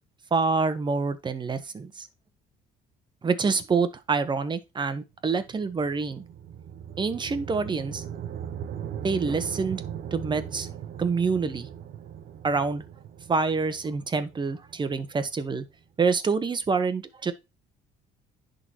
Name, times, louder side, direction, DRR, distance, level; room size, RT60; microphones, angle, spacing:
voice 1, 0.3-2.1 3.2-6.2 7.0-8.0 9.0-9.8 10.1-10.7 11.0-11.7 12.4-12.8 13.3-15.6 16.0-17.3, right 4 dB, 25° right, 1.2 m, -26 dB
sound 1, 5.3-15.6, right 9 dB, 65° right, 1.0 m, -39 dB
11.0 x 4.0 x 3.0 m
cardioid pair, 110°, 17 cm